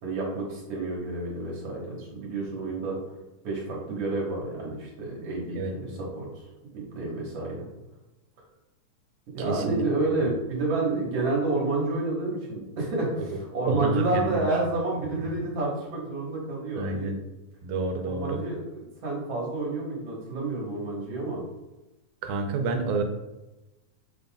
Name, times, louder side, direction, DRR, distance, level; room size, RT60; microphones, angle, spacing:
voice 1, 0.0-3.0 3.4-6.3 6.7-7.7 9.3-17.1 18.1-21.4, right 2 dB, 60° right, -4 dB, 2.3 m, -29 dB
voice 2, 5.6-6.0 9.4-9.6 13.7-14.4 16.8-17.2 17.6-18.4 22.2-23.0, right 3 dB, 85° right, 4 dB, 2.1 m, -29 dB
7.8 x 5.2 x 2.3 m, 1.0 s
omnidirectional pair, 3.3 m